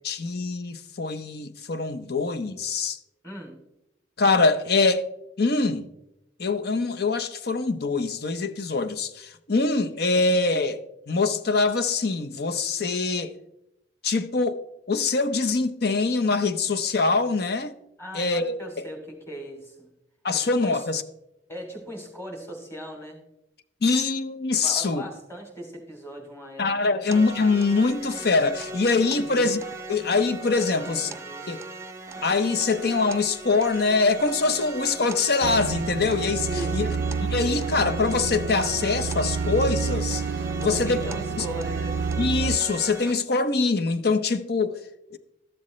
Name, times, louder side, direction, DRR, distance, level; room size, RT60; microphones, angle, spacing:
voice 1, 0.0-3.0 4.2-5.0 5.4-5.9 6.4-10.8 11.1-13.3 14.0-14.6 14.9-17.7 18.1-18.9 20.2-21.0 23.8-25.0 26.6-29.6 29.9-31.1 31.5-31.6 32.2-36.5 36.7-36.9 37.3-40.2 40.6-41.0 41.4-41.5 42.2-44.8 45.1-45.2, left 3 dB, 60° left, 0.7 m, -24 dB
voice 2, 3.2-3.6 10.1-10.3 18.0-19.9 20.3-20.9 21.5-23.2 24.6-27.1 29.1-29.6 30.7-31.6 36.4-37.0 40.6-42.0, equal, 15° left, 2.8 m, -39 dB
sound 1, 27.1-43.1, right 3 dB, 15° right, 0.8 m, -39 dB
sound 2, 35.4-42.6, right 5 dB, 70° right, 0.3 m, -29 dB
13.5 x 11.5 x 3.2 m
head